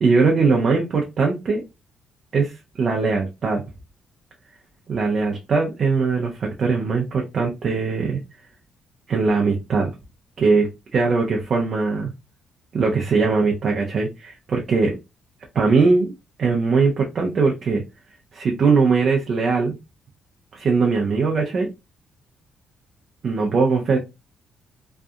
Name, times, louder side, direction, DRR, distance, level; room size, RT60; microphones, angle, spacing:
voice 1, 0.0-1.6 2.3-3.6 4.9-8.2 9.1-9.9 10.4-10.7 10.9-12.1 12.7-15.0 15.5-17.8 18.3-19.7 20.5-21.7 23.2-24.0, right 4 dB, 50° right, 0 dB, 0.6 m, -20 dB
2.7 x 2.2 x 2.4 m, 0.24 s
cardioid pair, 90°, 0 cm